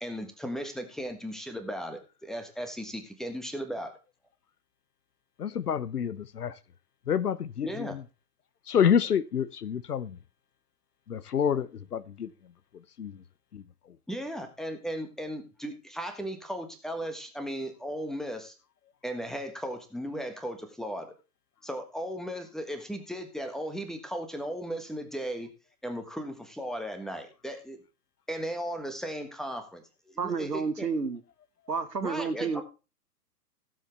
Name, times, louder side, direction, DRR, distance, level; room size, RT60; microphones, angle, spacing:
voice 1, 0.0-4.0 7.6-8.0 14.1-18.5 19.0-21.1 21.6-25.5 25.8-27.8 28.3-30.9 32.0-32.6, equal, ahead, 1.5 m, -36 dB
voice 2, 5.4-6.5 7.1-8.0 8.7-10.2 11.1-12.3 13.0-13.2 13.5-13.6, left 8 dB, 70° left, 1.0 m, -28 dB
voice 3, 30.2-31.2 31.7-32.6, right 5 dB, 85° right, 1.5 m, -30 dB
17.0 x 7.7 x 3.4 m
figure-of-eight pair, 115°, 47 cm